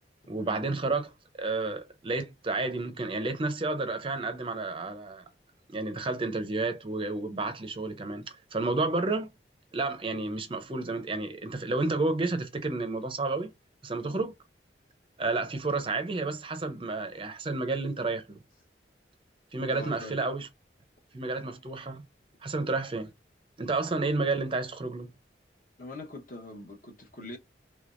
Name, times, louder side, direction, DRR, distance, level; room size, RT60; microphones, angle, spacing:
voice 1, 0.3-1.1 1.4-5.2 5.7-9.3 9.7-13.5 13.8-14.3 15.2-18.4 19.5-20.5 21.1-22.0 22.4-23.1 23.6-25.1, right 3 dB, 30° right, 0.5 m, -31 dB
voice 2, 19.7-20.2 25.8-27.4, left 2 dB, 45° left, 1.0 m, -43 dB
3.4 x 3.2 x 2.4 m
head